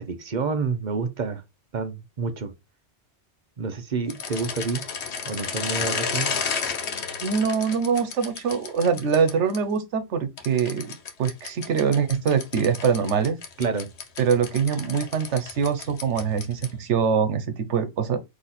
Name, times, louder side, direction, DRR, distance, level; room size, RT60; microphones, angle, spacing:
voice 1, 0.0-1.4 1.7-2.5 3.6-4.8 5.3-6.3 13.6-13.9, right 4 dB, 45° right, 0.8 m, -28 dB
sound 1, 4.1-9.6 10.4-16.9, left 6 dB, 75° left, 1.1 m, -32 dB
voice 2, 7.2-10.9 11.2-13.4 14.2-18.2, right 6 dB, 85° right, 1.1 m, -23 dB
4.2 x 2.9 x 4.1 m
omnidirectional pair, 1.2 m